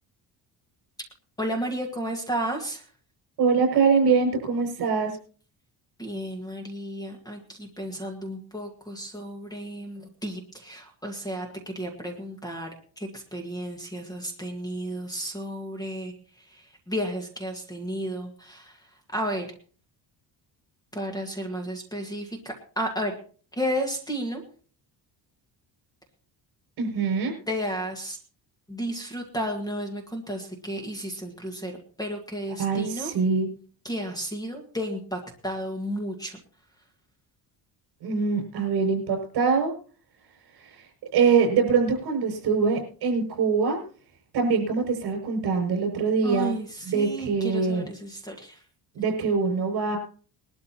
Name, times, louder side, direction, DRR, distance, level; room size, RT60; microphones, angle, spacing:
voice 1, 1.4-2.8 6.0-12.7 13.0-16.1 16.5-18.8 19.1-19.4 20.9-23.1 23.5-24.4 27.5-28.2 28.7-31.7 32.0-33.1 33.8-36.4 46.2-48.6, equal, 10° left, 2 dB, 1.6 m, -32 dB
voice 2, 3.4-5.2 26.8-27.3 32.6-33.5 38.0-39.7 40.5-43.8 44.3-46.5 46.8-47.9 48.9-50.0, right 5 dB, 65° right, 2 dB, 6.3 m, -24 dB
21.0 x 12.5 x 2.9 m, 0.42 s
cardioid pair, 175°, 41 cm